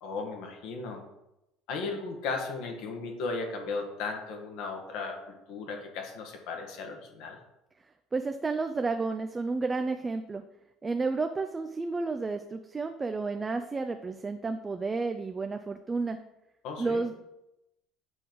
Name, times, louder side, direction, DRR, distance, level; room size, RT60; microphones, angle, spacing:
voice 1, 0.0-1.0 1.7-7.4 16.6-17.0, left 4 dB, 70° left, 3 dB, 1.5 m, -36 dB
voice 2, 8.1-10.4 10.8-16.2 16.8-17.1, right 3 dB, 15° right, 7 dB, 0.4 m, -31 dB
7.9 x 3.9 x 4.6 m, 0.88 s
cardioid pair, 140°, 0 cm